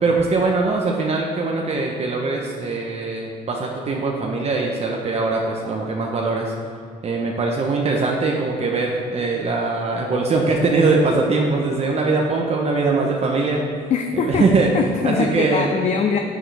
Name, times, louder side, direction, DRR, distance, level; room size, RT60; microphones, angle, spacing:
voice 1, 0.0-6.5 7.0-13.6 14.2-14.7 15.0-15.7, right 3 dB, 40° right, -1 dB, 1.0 m, -21 dB
voice 2, 13.9-14.5 14.7-16.2, left 5 dB, 45° left, 4 dB, 0.7 m, -22 dB
11.0 x 8.7 x 3.4 m, 2.2 s
cardioid pair, 110°, 17 cm